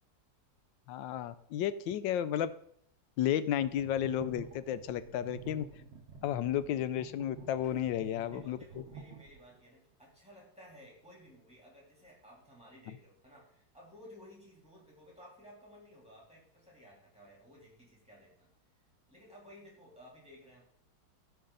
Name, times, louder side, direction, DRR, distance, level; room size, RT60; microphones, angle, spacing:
voice 1, 0.9-2.5 3.2-5.7 6.2-8.6, left 10 dB, 85° left, 14 dB, 1.3 m, -32 dB
sound 1, 3.5-9.6, right 4 dB, 50° right, 1.7 m, -49 dB
voice 2, 7.6-18.5 19.1-20.6, equal, 5° right, -4 dB, 3.2 m, -56 dB
15.5 x 5.2 x 3.9 m, 0.66 s
omnidirectional pair, 2.0 m